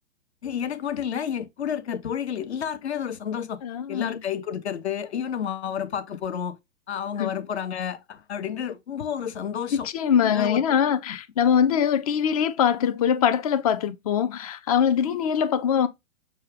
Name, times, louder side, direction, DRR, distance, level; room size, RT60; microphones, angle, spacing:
voice 1, 0.4-3.6 3.9-6.6 6.9-9.9 10.3-10.6, left 8 dB, 55° left, 0.8 m, -30 dB
voice 2, 3.6-4.2 7.2-7.3 9.7-15.9, left 8 dB, 30° left, 0.5 m, -23 dB
6.3 x 2.3 x 3.3 m
figure-of-eight pair, 110°, 38 cm